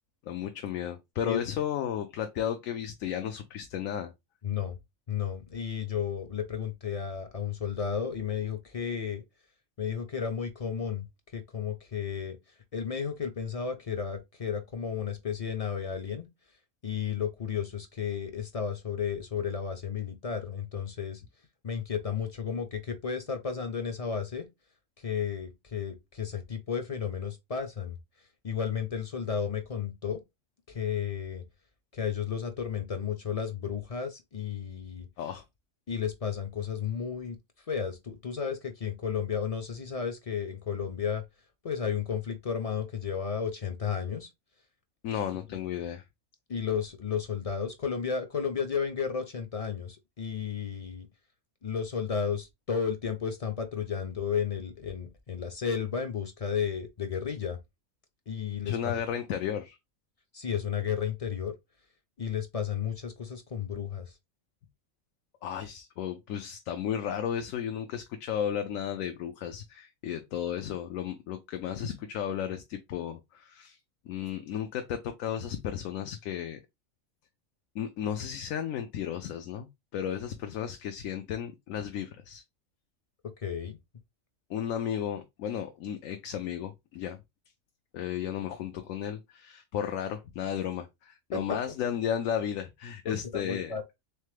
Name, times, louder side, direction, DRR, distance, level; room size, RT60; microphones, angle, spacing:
voice 1, 0.3-4.1 35.2-35.4 45.0-46.0 58.6-59.8 65.4-73.8 74.1-76.6 77.7-82.4 84.5-87.2 87.9-93.7, left 9 dB, 85° left, 1.0 m, -34 dB
voice 2, 4.4-4.8 5.1-9.2 9.8-11.0 11.3-12.4 12.7-16.3 16.8-21.2 21.6-24.5 25.0-28.0 28.4-30.2 30.7-31.4 31.9-35.1 35.9-37.4 37.7-41.2 41.6-44.3 45.5-45.6 46.5-51.1 51.6-57.6 58.3-59.0 60.3-61.5 62.2-64.1 83.4-83.8 91.3-91.4 93.0-93.8, left 7 dB, 55° left, 0.4 m, -33 dB
3.7 x 3.3 x 3.2 m
omnidirectional pair, 1.4 m